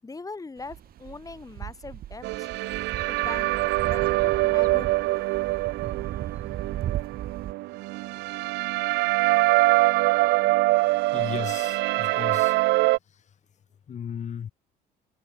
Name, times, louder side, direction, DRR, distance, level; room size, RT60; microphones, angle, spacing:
voice 1, 0.0-2.5 3.1-5.3, left 3 dB, 20° left, 7.6 m, -41 dB
sound 1, 0.6-7.5, right 12 dB, 60° right, 2.7 m, -37 dB
sound 2, 2.2-13.0, right 21 dB, 90° right, 1.1 m, -24 dB
voice 2, 11.1-12.6 13.1-13.2 13.9-14.5, left 8 dB, 45° left, 3.0 m, -35 dB
cardioid pair, 110°, 17 cm